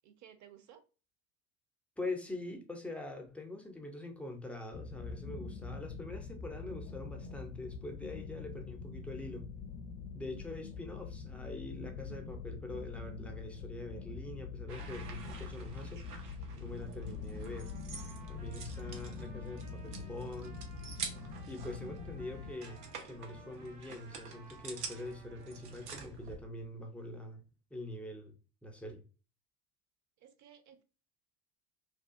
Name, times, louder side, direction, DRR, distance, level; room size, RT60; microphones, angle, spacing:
voice 1, 0.0-0.8 30.2-30.8, right 9 dB, 40° right, 0.6 m, -57 dB
voice 2, 2.0-9.5 10.1-16.0 16.6-17.7 18.3-20.6 21.5-27.4 27.7-28.3 28.6-29.0, left 2 dB, 5° left, 0.3 m, -44 dB
sound 1, 4.7-22.5, left 5 dB, 60° left, 0.5 m, -44 dB
sound 2, 14.7-26.4, right 4 dB, 80° right, 0.7 m, -47 dB
Trumpet, 17.5-25.9, right 3 dB, 60° right, 1.3 m, -59 dB
2.7 x 2.3 x 2.4 m
hypercardioid pair, 70°, 46 cm